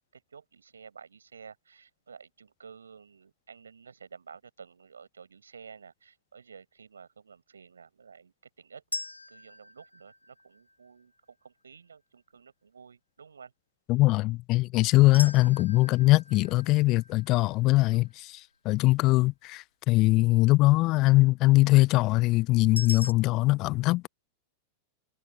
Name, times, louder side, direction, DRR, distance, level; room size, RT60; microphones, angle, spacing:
voice 1, 0.0-8.8 9.3-13.5 16.3-16.5 17.8-18.0, right 6 dB, 70° right, 7.0 m, -51 dB
sound 1, 8.9-11.0 15.1-18.3 22.8-23.1, left 2 dB, 85° left, 1.8 m, -40 dB
voice 2, 13.9-24.1, left 20 dB, 40° left, 0.5 m, -22 dB
figure-of-eight pair, 90°, 0 cm